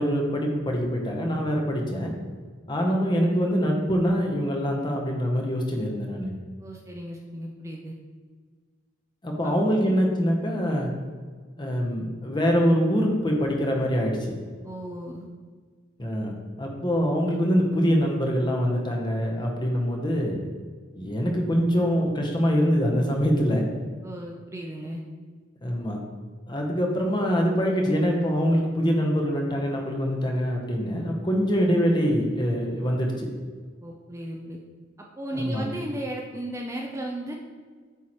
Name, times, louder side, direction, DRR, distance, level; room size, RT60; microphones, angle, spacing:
voice 1, 0.0-2.1 2.7-6.3 9.2-10.9 11.6-14.2 16.0-16.3 16.6-20.4 20.9-23.6 25.6-26.0 26.5-33.3 35.3-35.7, equal, 25° left, 0 dB, 0.9 m, -24 dB
voice 2, 6.6-7.9 9.8-10.0 14.6-15.3 24.0-25.0 33.8-34.6 35.0-37.3, right 1 dB, 15° right, 0 dB, 0.4 m, -35 dB
8.1 x 3.1 x 4.4 m, 1.5 s
head